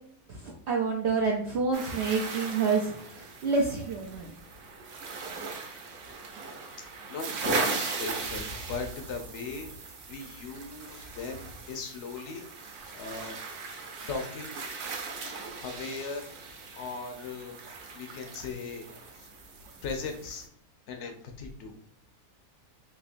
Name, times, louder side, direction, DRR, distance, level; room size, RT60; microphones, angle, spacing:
voice 1, 0.3-4.4, right 4 dB, 90° right, -1 dB, 0.5 m, -28 dB
sound 1, 1.7-20.5, right 4 dB, 70° right, 1.1 m, -38 dB
voice 2, 7.1-12.5 12.9-13.4 14.1-14.5 15.6-16.3 16.7-17.6 17.9-18.9 19.1-19.3 19.8-20.5 20.9-21.7, left 4 dB, 70° left, 4 dB, 0.7 m, -38 dB
3.6 x 3.0 x 2.5 m, 0.66 s
omnidirectional pair, 1.7 m